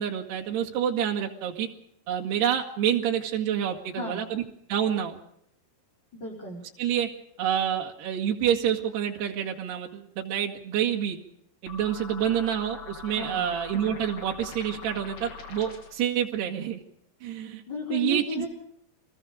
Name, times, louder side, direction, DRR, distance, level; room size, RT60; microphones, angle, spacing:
voice 1, 0.0-1.7 2.1-4.4 4.7-5.2 6.8-7.1 7.4-11.2 11.6-16.8 17.2-17.6 17.9-18.5, right 9 dB, 80° right, 1 dB, 4.0 m, -28 dB
voice 2, 6.1-6.7 13.2-13.5 17.7-18.5, left 3 dB, 25° left, -1 dB, 5.3 m, -34 dB
sound 1, 11.7-16.1, left 5 dB, 70° left, 4.7 m, -42 dB
27.5 x 20.5 x 5.1 m, 0.72 s
omnidirectional pair, 4.7 m